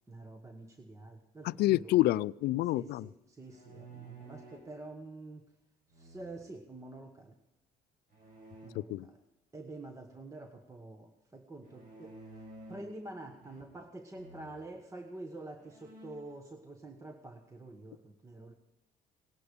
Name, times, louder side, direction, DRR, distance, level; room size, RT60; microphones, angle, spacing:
voice 1, 0.1-1.9 2.6-5.5 5.9-7.4 8.6-9.2 9.5-12.4 12.7-18.5, right 2 dB, 20° right, 1.2 m, -47 dB
voice 2, 1.4-3.1 8.8-9.1, left 16 dB, 70° left, 0.4 m, -28 dB
sound 1, 3.4-4.7 5.9-6.6 8.1-8.7 11.6-13.0 13.4-13.9 14.1-14.5 15.1-15.2 15.6-16.3, right 2 dB, 55° right, 6.2 m, -52 dB
18.5 x 11.0 x 5.2 m
cardioid pair, 110°, 17 cm